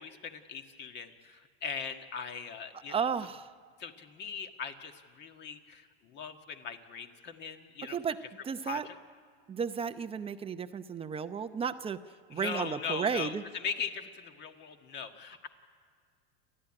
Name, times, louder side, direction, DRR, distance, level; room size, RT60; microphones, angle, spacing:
voice 1, 0.0-3.0 3.8-8.0 8.7-8.9 12.3-15.5, left 6 dB, 35° left, 6 dB, 1.8 m, -40 dB
voice 2, 2.9-3.5 7.8-8.2 8.4-8.9 9.5-12.0 12.3-13.4, right 6 dB, 20° right, 9 dB, 0.7 m, -33 dB
29.5 x 12.0 x 10.0 m, 2.1 s
supercardioid pair, 135°, 29 cm